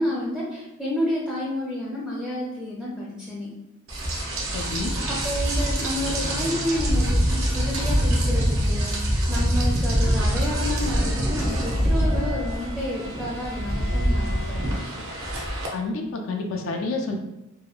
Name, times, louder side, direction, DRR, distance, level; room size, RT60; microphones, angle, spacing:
voice 1, 0.0-3.5 5.1-8.9 9.3-14.6, left 1 dB, ahead, -8 dB, 0.4 m, -30 dB
Rain, 3.9-15.7, equal, 80° right, 0.6 m, -24 dB
voice 2, 4.5-5.0 15.7-17.2, left 3 dB, 70° left, 3 dB, 0.4 m, -29 dB
2.7 x 2.1 x 2.4 m, 0.92 s
head